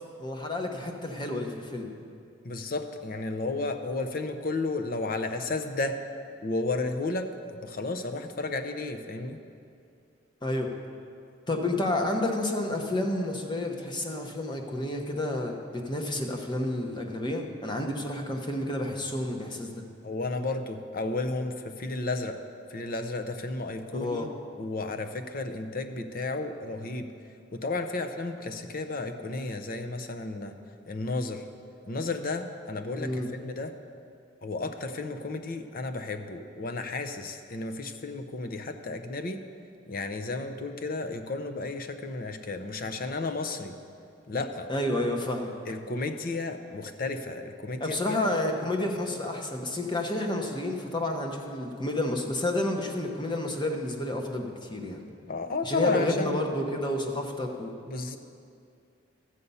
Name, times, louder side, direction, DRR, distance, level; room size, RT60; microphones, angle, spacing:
voice 1, 0.2-1.9 10.4-10.7 11.5-19.8 24.0-24.3 33.0-33.3 44.7-45.5 47.8-55.0 55.6-57.7, left 1 dB, 20° left, 2 dB, 1.0 m, -30 dB
voice 2, 2.4-6.0 6.4-9.4 20.0-22.4 22.7-24.3 24.6-27.1 27.5-30.5 30.9-31.4 31.9-33.7 34.4-39.4 39.9-43.8 44.3-44.7 45.7-48.2 55.3-56.4 57.9-58.2, left 3 dB, 45° left, 8 dB, 0.6 m, -33 dB
13.0 x 8.1 x 5.5 m, 2.4 s
head